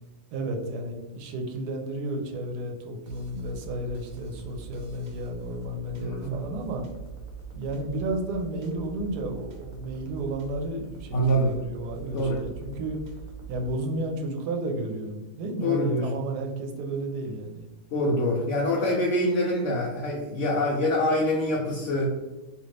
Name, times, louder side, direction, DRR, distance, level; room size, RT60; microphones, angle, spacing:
voice 1, 0.3-6.8 7.5-13.0 13.5-17.7, right 2 dB, 85° right, 2 dB, 1.2 m, -32 dB
sound 1, 3.1-13.7, right 5 dB, 65° right, 1.0 m, -43 dB
voice 2, 5.9-6.4 11.1-11.6 12.1-12.4 15.6-16.1 17.9-22.2, equal, 65° left, -2 dB, 0.7 m, -25 dB
2.8 x 2.5 x 3.1 m, 1.1 s
omnidirectional pair, 1.7 m